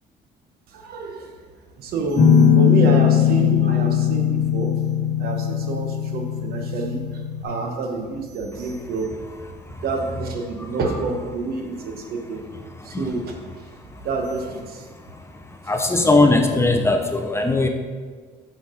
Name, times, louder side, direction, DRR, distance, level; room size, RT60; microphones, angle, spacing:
voice 1, 0.7-1.3 1.8-4.8 5.2-9.3 9.8-12.4 12.8-13.4 14.0-14.8, right 3 dB, 65° right, 3 dB, 1.1 m, -28 dB
Guitar, 2.2-7.4, left 8 dB, 65° left, 1.0 m, -19 dB
voice 2, 15.7-17.7, left 2 dB, 15° left, 4 dB, 0.6 m, -18 dB
6.3 x 6.2 x 3.8 m, 1.5 s
cardioid pair, 110°, 17 cm